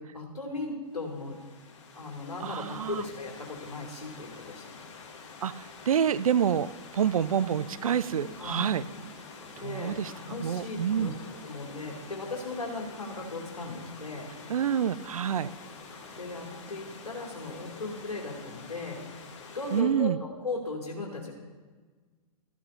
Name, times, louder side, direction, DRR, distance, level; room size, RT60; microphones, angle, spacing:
voice 1, 0.0-1.4 1.9-4.8 8.4-8.7 9.6-14.3 16.2-19.0 19.5-21.3, left 3 dB, 70° left, -3 dB, 3.0 m, -37 dB
Stream / Liquid, 0.9-19.8, left 5 dB, 50° left, 1.5 m, -48 dB
voice 2, 2.4-3.0 5.4-8.8 9.6-11.1 14.5-15.5 19.7-20.2, right 8 dB, 60° right, 15 dB, 0.5 m, -28 dB
sound 1, 7.5-18.1, right 3 dB, 15° right, 2.5 m, -52 dB
16.5 x 14.0 x 2.7 m, 1.4 s
figure-of-eight pair, 115°, 20 cm